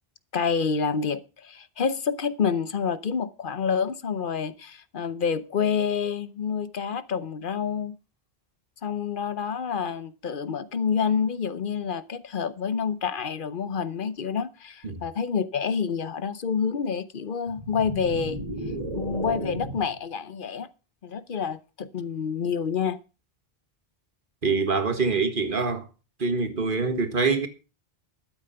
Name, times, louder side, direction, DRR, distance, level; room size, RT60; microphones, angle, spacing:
voice 1, 0.3-8.0 8.8-18.4 18.9-20.7 21.0-23.0, left 6 dB, 55° left, 1.0 m, -28 dB
sound 1, 17.5-20.0, right 1 dB, 35° right, 2.5 m, -34 dB
voice 2, 24.4-25.9 26.2-27.5, right 4 dB, 55° right, 1.8 m, -25 dB
12.5 x 8.7 x 5.7 m
omnidirectional pair, 1.1 m